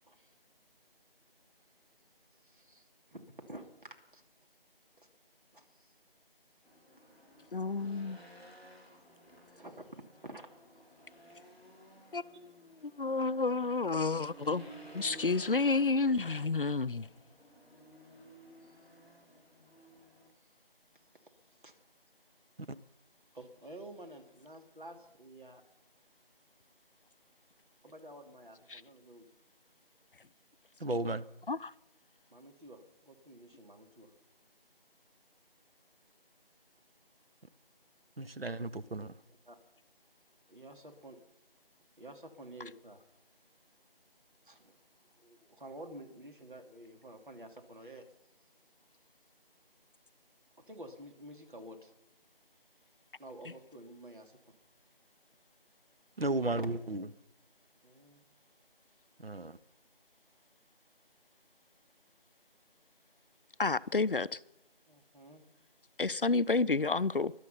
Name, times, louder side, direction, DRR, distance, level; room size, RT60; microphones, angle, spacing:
voice 1, 2.4-4.2 5.0-5.1 5.5-5.9 8.9-9.0 9.5-9.9 10.2-10.5 18.6-18.7 21.6-21.7 23.3-25.6 27.8-29.3 32.3-34.1 39.5-39.6 40.5-41.2 42.0-43.0 44.4-44.8 45.2-48.0 50.6-51.9 53.2-54.3 56.6-56.7 57.8-58.3 64.9-65.4, right 1 dB, 55° right, 2.8 m, -50 dB
Race car auto racing / Engine, 6.6-20.3, equal, 5° right, 2.0 m, -55 dB
voice 2, 7.5-8.2 12.1-12.5 12.8-17.1 28.7-28.8 31.5-31.7 63.6-64.4 66.0-67.3, left 3 dB, 60° left, 0.5 m, -30 dB
voice 3, 30.8-31.2 38.2-39.1 56.2-57.1 59.2-59.6, right 2 dB, 75° right, 1.0 m, -34 dB
20.5 x 12.0 x 5.7 m
figure-of-eight pair, 170°, 30 cm